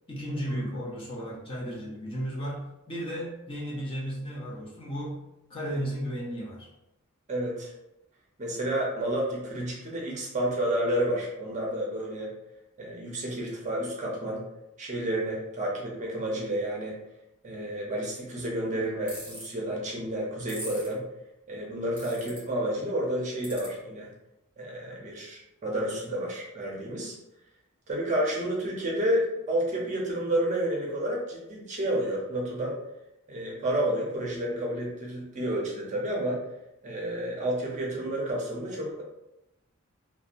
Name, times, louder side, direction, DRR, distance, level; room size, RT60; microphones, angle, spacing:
voice 1, 0.1-5.2 5.5-6.7, equal, 25° left, -4 dB, 0.5 m, -34 dB
voice 2, 7.3-7.7 8.4-12.3 12.8-14.5 14.8-17.0 17.4-21.1 21.5-24.1 24.6-27.2 27.9-32.8 33.3-36.4 36.8-39.0, right 1 dB, 35° right, -2 dB, 0.5 m, -30 dB
sound 1, 19.1-19.5 20.5-20.9 22.0-22.4 23.4-23.7, right 1 dB, 10° right, 0.9 m, -40 dB
2.7 x 2.1 x 2.4 m, 0.88 s
head